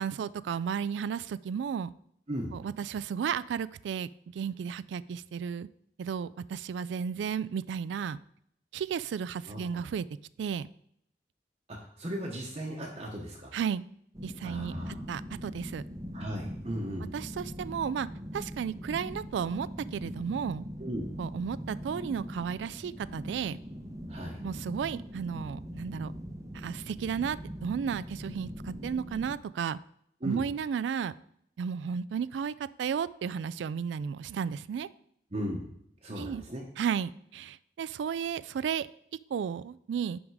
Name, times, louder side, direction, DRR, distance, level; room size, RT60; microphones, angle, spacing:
voice 1, 0.0-1.9 2.5-5.7 6.0-8.2 8.7-10.0 10.4-10.7 13.5-13.8 14.2-15.8 17.1-18.1 18.3-20.6 21.2-23.6 24.4-26.1 26.5-29.8 30.2-31.1 31.6-34.9 36.1-36.4 36.8-38.9 39.3-40.2, right 7 dB, 85° right, 17 dB, 0.3 m, -33 dB
voice 2, 9.5-9.8 11.7-13.6 14.4-14.9 16.1-17.1 20.8-21.1 24.1-24.4 30.2-30.5 35.3-35.6 36.0-36.6, equal, 35° right, -2 dB, 1.0 m, -36 dB
sound 1, 14.1-29.3, equal, 20° right, 0.7 m, -41 dB
10.5 x 3.6 x 4.7 m, 0.70 s
head